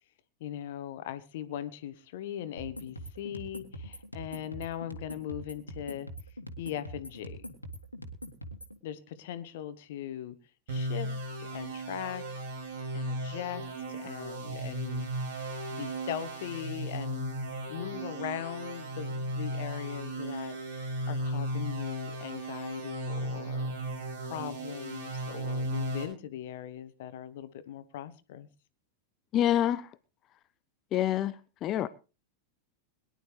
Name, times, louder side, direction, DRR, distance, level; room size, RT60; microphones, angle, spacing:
voice 1, 0.4-6.1 6.6-7.5 8.8-10.3 10.7-12.2 12.9-15.1 15.7-17.3 17.7-23.8 24.2-28.5, left 11 dB, 55° left, 1.3 m, -40 dB
sound 1, 2.6-8.8, equal, 85° left, 1.9 m, -43 dB
sound 2, 10.7-26.0, right 1 dB, 55° right, 5.4 m, -36 dB
voice 2, 29.3-29.8 30.9-31.3 31.6-31.9, left 11 dB, 35° left, 0.6 m, -26 dB
22.0 x 11.0 x 3.3 m
figure-of-eight pair, 90°, 0 cm